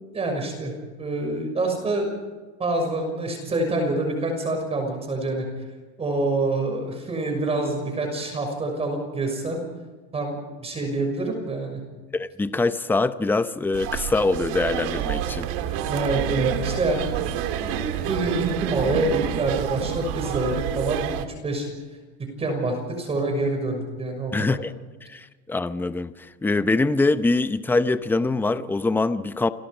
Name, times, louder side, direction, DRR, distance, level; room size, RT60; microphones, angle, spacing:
voice 1, 0.1-0.7 1.0-2.1 2.6-5.5 6.0-9.6 10.1-11.8 15.9-17.1 17.6-21.7 22.4-24.6, right 2 dB, 20° right, 3 dB, 6.3 m, -26 dB
voice 2, 12.1-15.5 24.3-24.7 25.1-26.1 26.4-29.5, left 3 dB, 5° left, 12 dB, 0.8 m, -23 dB
sound 1, 13.7-21.2, right 10 dB, 60° right, 2.7 m, -28 dB
30.0 x 23.0 x 5.1 m, 1.3 s
supercardioid pair, 140°, 32 cm